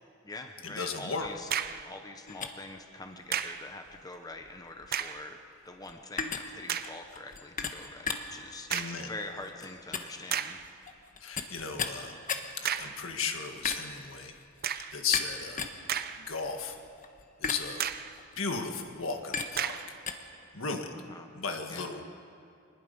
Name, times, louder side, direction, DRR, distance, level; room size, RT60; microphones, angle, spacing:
voice 1, 0.2-1.5 1.8-5.4 5.6-10.6 20.9-21.3 21.7-21.9, left 2 dB, 20° left, 5 dB, 1.0 m, -44 dB
voice 2, 0.8-1.3 8.7-9.1 11.2-12.2 12.6-14.3 14.9-15.7 16.3-16.7 17.4-17.9 18.4-19.8 20.5-20.9 21.3-22.0, left 5 dB, 65° left, 4 dB, 1.8 m, -35 dB
sound 1, 1.2-1.9 3.3-3.7 4.8-5.3 5.9-6.0 6.7-7.0 8.7-9.1 9.8-9.9 10.3-10.7 12.6-13.0 14.6-15.0 15.6-16.5 16.8-16.9 17.8-18.2 19.6-20.0, right 9 dB, 45° right, 0.7 m, -33 dB
sound 2, 2.3-20.1, left 5 dB, 40° left, 1.3 m, -39 dB
25.5 x 20.0 x 5.4 m, 2.5 s
head